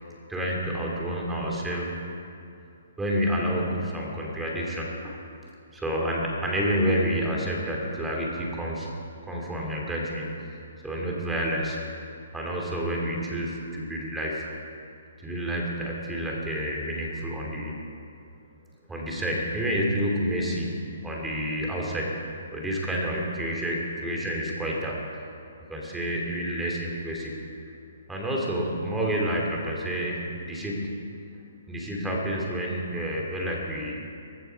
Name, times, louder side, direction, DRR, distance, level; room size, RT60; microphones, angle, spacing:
voice 1, 0.3-2.1 3.0-5.2 5.7-8.9 9.3-11.8 12.3-14.5 15.2-17.8 18.9-20.8 21.0-22.2 22.5-25.0 25.6-27.4 28.1-31.0 31.7-34.0, equal, 5° right, -2 dB, 2.7 m, -29 dB
18.5 x 16.0 x 4.7 m, 2.5 s
hypercardioid pair, 140°, 0 cm